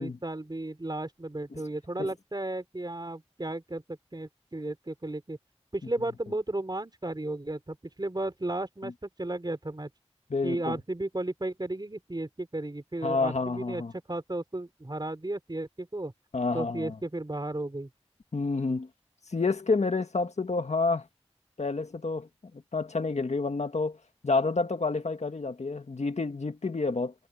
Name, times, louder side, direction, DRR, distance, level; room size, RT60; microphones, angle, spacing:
voice 1, 0.0-5.4 5.7-9.9 10.4-13.8 14.1-16.1 16.5-17.9, right 2 dB, 40° right, 4.3 m, -34 dB
voice 2, 10.3-10.8 13.0-13.9 16.3-17.0 18.3-18.9 19.3-21.1 21.6-24.0 24.2-27.1, left 3 dB, 90° left, 1.8 m, -29 dB
wide cardioid pair, 40°, 11 cm